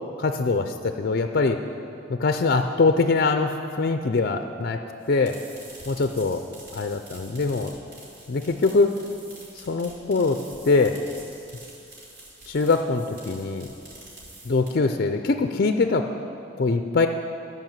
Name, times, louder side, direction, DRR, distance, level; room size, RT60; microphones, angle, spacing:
voice 1, 0.2-1.6 2.1-4.8 5.1-5.4 5.9-6.4 6.7-7.7 8.3-9.0 9.6-11.0 12.5-13.7 14.5-16.1 16.6-17.1, left 3 dB, 50° left, 7 dB, 0.4 m, -23 dB
sound 1, 5.0-15.0, right 1 dB, 55° right, 3.2 m, -46 dB
13.5 x 5.5 x 7.3 m, 2.5 s
head